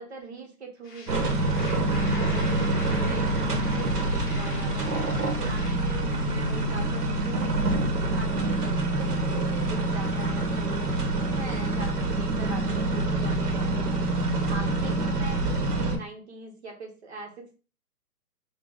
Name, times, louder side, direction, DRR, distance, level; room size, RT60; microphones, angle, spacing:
voice 1, 0.0-8.7 9.0-17.5, right 3 dB, 45° right, 2 dB, 1.2 m, -41 dB
sound 1, 0.8-5.7, left 3 dB, 30° left, 1.3 m, -44 dB
sound 2, 1.1-16.0, right 2 dB, 75° right, 1.4 m, -26 dB
4.0 x 2.5 x 3.7 m, 0.36 s
hypercardioid pair, 175°, 48 cm